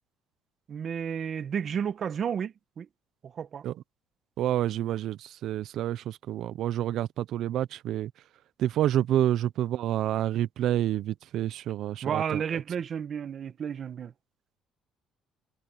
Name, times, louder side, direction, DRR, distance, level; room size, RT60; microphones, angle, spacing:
voice 1, 0.7-2.9 3.2-3.6 12.0-14.1, right 7 dB, 45° right, 1.5 m, -32 dB
voice 2, 4.4-8.1 8.6-12.4, right 12 dB, 65° right, 0.8 m, -28 dB
cardioid pair, 110°, 0 cm